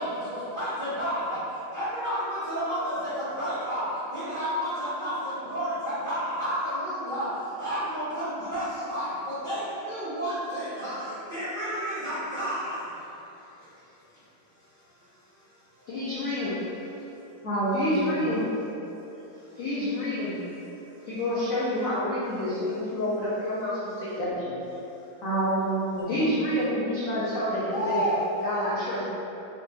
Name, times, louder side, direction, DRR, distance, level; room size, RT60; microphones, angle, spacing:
voice 1, 0.0-13.9 14.6-15.9 17.0-17.2 19.0-19.6 20.7-21.1 24.9-25.1 27.7-28.3, equal, 60° right, -13 dB, 0.5 m, -32 dB
voice 2, 15.9-16.5 17.7-18.4 19.6-20.4 21.1-24.4 26.1-28.0 28.4-29.0, left 1 dB, 80° left, -10 dB, 0.7 m, -28 dB
voice 3, 17.4-18.5 25.2-26.3, right 2 dB, 60° left, -10 dB, 1.1 m, -28 dB
4.4 x 2.2 x 2.6 m, 3.0 s
omnidirectional pair, 2.2 m